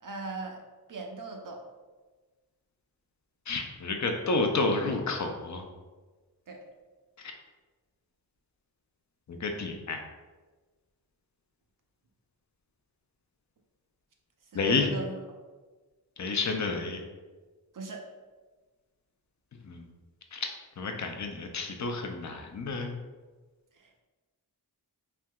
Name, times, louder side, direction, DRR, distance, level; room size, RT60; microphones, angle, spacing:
voice 1, 0.0-0.6 0.9-1.6 6.5-6.6 14.5-15.1 17.7-18.0 23.7-24.0, right 3 dB, 55° right, 2 dB, 0.5 m, -39 dB
voice 2, 3.5-5.6 7.2-7.3 9.3-10.0 14.5-14.9 16.2-17.0 19.6-19.9 20.3-20.5 20.8-23.0, left 3 dB, 50° left, 3 dB, 0.5 m, -30 dB
3.3 x 2.7 x 2.3 m, 1.3 s
wide cardioid pair, 60°, 39 cm